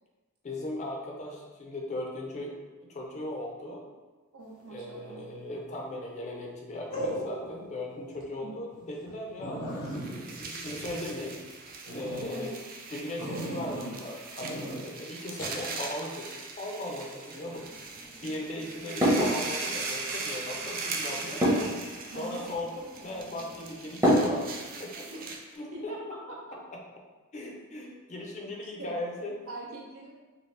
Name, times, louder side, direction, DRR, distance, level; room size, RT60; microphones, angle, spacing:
voice 1, 0.4-3.9 4.7-11.4 11.9-12.5 12.9-17.7 18.2-21.4 22.2-25.1 25.5-26.1 26.7-26.8 27.3-29.4, left 1 dB, 35° left, 0 dB, 0.4 m, -38 dB
voice 2, 4.3-5.2 8.4-8.5 12.3-12.6 22.0-22.4 25.1-25.3 25.7-26.0 26.3-26.6 28.6-28.9 29.5-30.1, right 2 dB, 70° right, -2 dB, 0.7 m, -43 dB
sound 1, 5.3-5.7 6.9-7.7 8.1-8.2 8.7-8.8 9.1-9.2 9.4-11.4 11.8-12.3 13.2-14.0 14.4-14.8 15.4-15.6, equal, 85° left, 0.8 m, -37 dB
sound 2, 9.8-25.6, right 4 dB, 40° right, 0.3 m, -39 dB
sound 3, 17.4-24.8, equal, 15° right, 0.7 m, -31 dB
2.8 x 2.4 x 3.2 m, 1.3 s
head